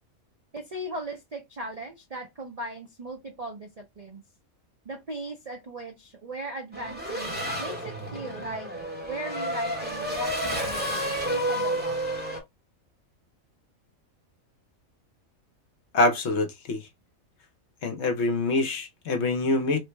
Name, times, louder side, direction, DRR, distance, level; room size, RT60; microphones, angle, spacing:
voice 1, 0.5-4.2 4.9-8.7 9.0-12.0, right 2 dB, 55° right, 0.4 m, -38 dB
Race car auto racing / Accelerating revving vroom, 6.7-12.4, equal, 10° right, 0.8 m, -30 dB
voice 2, 15.9-16.9 17.8-19.8, left 2 dB, 60° left, 0.9 m, -25 dB
3.2 x 2.1 x 3.1 m
omnidirectional pair, 1.4 m